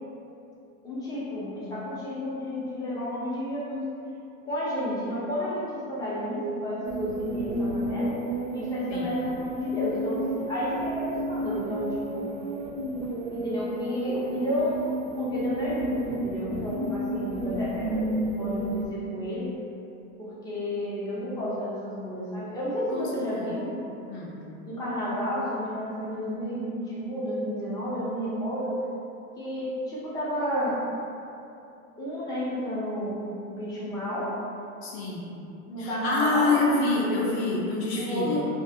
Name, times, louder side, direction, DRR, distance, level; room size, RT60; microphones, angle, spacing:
voice 1, 0.8-3.9 4.5-8.2 8.5-12.3 13.3-14.8 15.2-19.5 20.2-23.8 24.6-28.8 29.4-30.8 32.0-33.1 33.4-34.3 35.7-36.6 37.9-38.5, equal, 10° left, -8 dB, 0.4 m, -31 dB
sound 1, 6.8-18.9, right 1 dB, 60° right, 0.5 m, -31 dB
voice 2, 22.9-23.6 24.1-24.4 34.8-35.3 35.8-38.5, left 3 dB, 50° left, -4 dB, 0.7 m, -27 dB
2.6 x 2.4 x 2.5 m, 2.7 s
hypercardioid pair, 110°, 43 cm